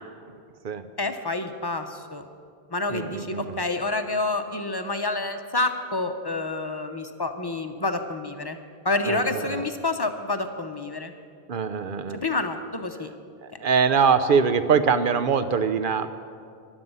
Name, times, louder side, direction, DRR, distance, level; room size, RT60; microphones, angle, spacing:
voice 1, 1.0-2.2 2.7-8.6 8.8-11.1 12.1-13.1, left 2 dB, 25° left, 7 dB, 0.7 m, -28 dB
voice 2, 2.9-3.6 9.1-9.7 11.5-12.2 13.4-16.1, right 6 dB, 55° right, 11 dB, 0.8 m, -23 dB
15.5 x 11.5 x 5.6 m, 2.3 s
omnidirectional pair, 1.1 m